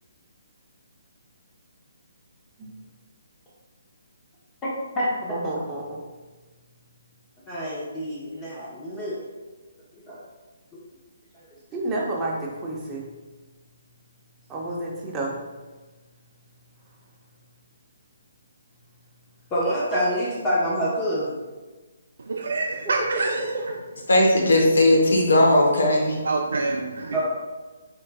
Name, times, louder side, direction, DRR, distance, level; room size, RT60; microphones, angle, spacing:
voice 1, 4.6-5.3 7.5-9.2 9.9-10.2 11.3-11.4 19.5-21.3 27.1-27.2, equal, 15° left, -7 dB, 0.8 m, -27 dB
voice 2, 5.3-6.0 11.7-13.1 14.5-15.4 22.8-22.9 23.4-23.5 24.6-24.7, right 2 dB, 15° right, -3 dB, 0.7 m, -30 dB
voice 3, 22.2-23.4 26.2-27.2, right 3 dB, 75° right, 1 dB, 0.4 m, -26 dB
voice 4, 24.1-26.2, left 1 dB, 85° left, -1 dB, 1.1 m, -18 dB
5.1 x 3.8 x 2.3 m, 1.2 s
hypercardioid pair, 155°, 0 cm